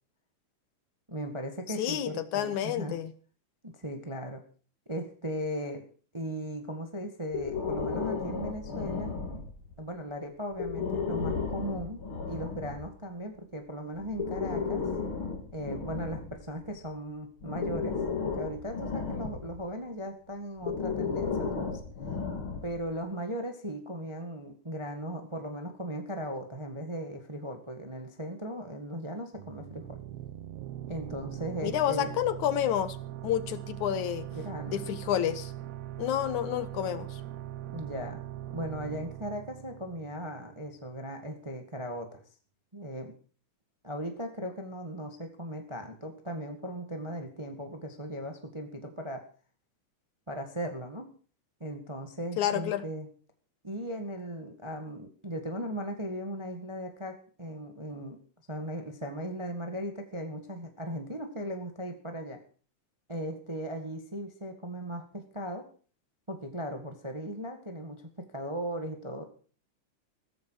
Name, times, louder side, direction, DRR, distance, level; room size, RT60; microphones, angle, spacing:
voice 1, 1.1-3.0 3.6-4.4 4.9-5.8 6.1-9.1 9.8-12.0 12.3-14.8 15.5-21.8 22.6-30.0 30.9-32.1 34.3-34.8 37.7-38.2 38.5-42.2 42.7-43.1 43.8-49.2 50.3-51.1 51.6-53.1 53.6-58.2 58.5-62.4 63.1-65.7 66.3-69.2, equal, 15° right, 5 dB, 1.0 m, -37 dB
voice 2, 1.8-3.1 31.6-33.0 33.2-34.3 34.7-35.5 36.0-37.2 52.4-52.8, left 11 dB, 75° left, 13 dB, 2.3 m, -29 dB
Breathing, 7.3-9.7 10.5-12.9 14.0-16.8 17.4-19.6 20.6-22.9, left 5 dB, 40° left, 3.2 m, -34 dB
sound 1, 29.4-40.8, right 12 dB, 65° right, 1.8 m, -41 dB
15.5 x 14.5 x 4.8 m, 0.41 s
omnidirectional pair, 3.6 m